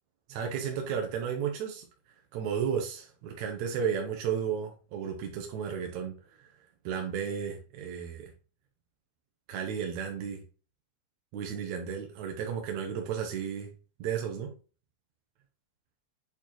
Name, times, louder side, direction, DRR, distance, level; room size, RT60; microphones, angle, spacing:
voice 1, 0.3-1.9 2.3-6.5 6.8-8.3 9.5-10.4 11.3-13.7 14.0-14.5, right 7 dB, 70° right, 2.0 m, -33 dB
8.5 x 4.3 x 3.0 m
omnidirectional pair, 3.8 m